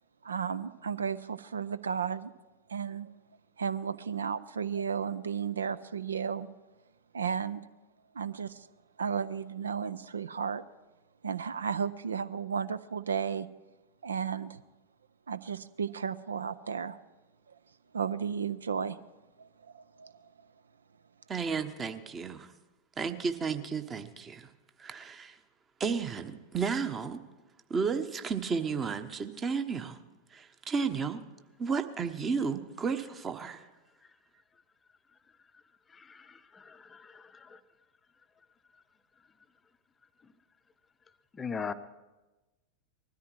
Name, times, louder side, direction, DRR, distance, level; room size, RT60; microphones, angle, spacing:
voice 1, 0.2-2.3 2.7-3.1 3.6-6.5 7.1-7.7 8.1-8.7 9.0-10.6 11.2-13.5 14.0-14.6 15.3-17.0 17.9-19.0 19.4-19.5 19.7-20.1, right 7 dB, 70° right, 0.4 m, -33 dB
voice 2, 21.3-22.5 23.0-24.5 24.8-25.4 25.8-27.2 27.7-30.0 30.3-31.2 31.6-33.6, right 5 dB, 20° right, 1.0 m, -33 dB
voice 3, 35.9-37.6 41.3-41.7, left 5 dB, 15° left, 0.6 m, -40 dB
20.5 x 13.5 x 4.6 m
figure-of-eight pair, 90°, 0 cm